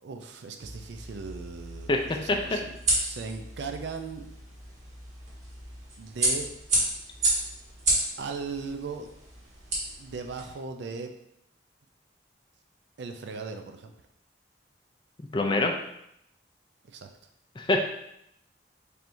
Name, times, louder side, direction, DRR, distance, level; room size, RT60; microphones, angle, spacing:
voice 1, 0.0-2.8 3.0-4.3 6.0-6.5 8.2-9.1 10.0-11.1 13.0-13.9 16.9-17.1, right 4 dB, 65° right, 5 dB, 0.4 m, -38 dB
sound 1, 0.6-10.5, right 1 dB, 40° right, 1.3 m, -32 dB
voice 2, 15.2-15.7 17.6-17.8, left 2 dB, 25° left, 3 dB, 0.4 m, -24 dB
4.4 x 3.4 x 2.6 m, 0.78 s
head